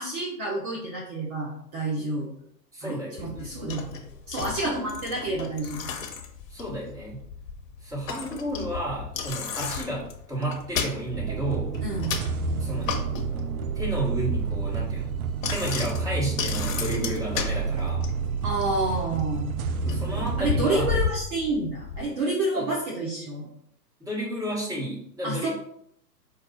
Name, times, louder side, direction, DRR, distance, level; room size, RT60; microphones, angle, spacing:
voice 1, 0.0-2.3 2.8-4.0 4.3-5.9 11.8-12.2 18.4-19.6 20.4-23.5 25.2-25.5, right 2 dB, 30° right, -4 dB, 1.0 m, -29 dB
voice 2, 2.7-3.6 4.6-4.9 6.5-7.2 7.8-11.7 12.6-12.9 13.7-15.1 15.5-18.0 19.8-20.9 22.5-22.7 24.0-25.5, right 1 dB, 5° right, -6 dB, 1.4 m, -32 dB
Bicycle, 3.2-22.0, left 6 dB, 55° left, 0.9 m, -34 dB
sound 1, 11.1-20.5, right 5 dB, 60° right, 0.5 m, -29 dB
5.1 x 2.4 x 4.1 m, 0.70 s
figure-of-eight pair, 115°, 49 cm